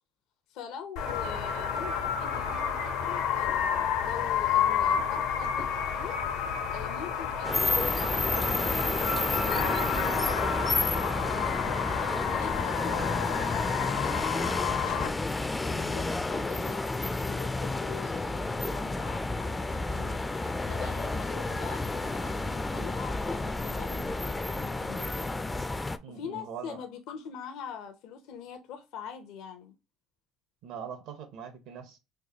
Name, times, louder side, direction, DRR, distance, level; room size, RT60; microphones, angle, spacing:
voice 1, 0.5-3.7 4.0-6.2 6.7-11.6 12.2-15.1 15.6-16.9 17.3-25.1 26.1-29.7, left 7 dB, 70° left, 0.6 m, -43 dB
sound 1, 1.0-15.1, left 7 dB, 90° left, 0.9 m, -30 dB
sound 2, 7.4-26.0, left 2 dB, 15° left, 0.3 m, -31 dB
voice 2, 26.0-26.8 30.6-32.0, right 7 dB, 70° right, 0.9 m, -42 dB
4.6 x 2.3 x 2.8 m
supercardioid pair, 90°, 0 cm